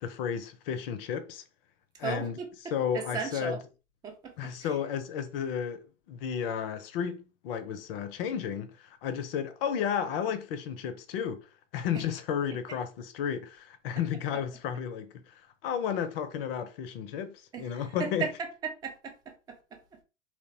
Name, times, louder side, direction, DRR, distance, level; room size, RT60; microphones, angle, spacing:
voice 1, 0.0-1.4 2.0-2.4 2.7-3.6 4.4-5.8 6.1-11.5 11.7-18.3, left 8 dB, 50° left, 0.5 m, -33 dB
voice 2, 2.0-2.5 2.9-3.6 4.0-4.7 17.5-17.7 18.0-18.3 18.6-19.8, right 6 dB, 10° right, 0.3 m, -36 dB
2.9 x 2.0 x 2.7 m
hypercardioid pair, 110°, 38 cm